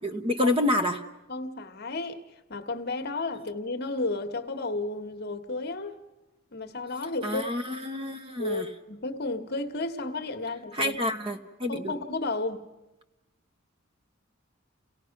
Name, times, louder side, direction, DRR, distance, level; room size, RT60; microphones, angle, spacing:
voice 1, 0.0-1.0 7.2-8.7 10.7-11.9, left 1 dB, 25° right, 1.1 m, -28 dB
voice 2, 1.3-2.2 2.5-6.0 6.5-7.5 8.4-11.0 11.7-12.6, left 2 dB, 50° left, 1.3 m, -32 dB
29.5 x 17.5 x 5.9 m
head